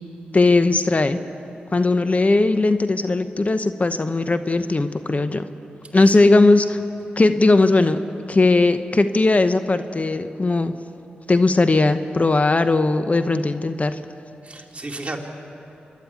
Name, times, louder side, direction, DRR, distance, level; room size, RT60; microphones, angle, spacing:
voice 1, 0.3-1.2 1.7-5.5 5.9-6.8 7.2-8.0 8.3-10.7 11.3-14.0, left 2 dB, 40° left, 10 dB, 0.9 m, -18 dB
voice 2, 5.9-6.3 14.4-15.2, right 2 dB, 35° right, 1 dB, 2.6 m, -33 dB
26.0 x 11.5 x 9.5 m, 2.9 s
cardioid pair, 45°, 4 cm